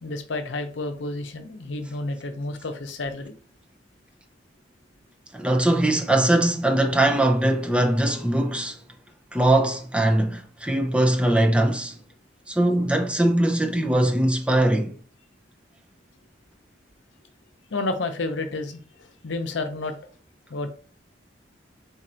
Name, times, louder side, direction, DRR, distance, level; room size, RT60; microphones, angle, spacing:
voice 1, 0.0-3.3 17.7-18.8 19.2-20.0 20.5-20.7, left 2 dB, 85° left, 0.7 m, -30 dB
voice 2, 5.3-8.8 9.3-12.0 12.5-15.0, right 1 dB, 5° right, 0.5 m, -21 dB
4.0 x 2.5 x 4.3 m
head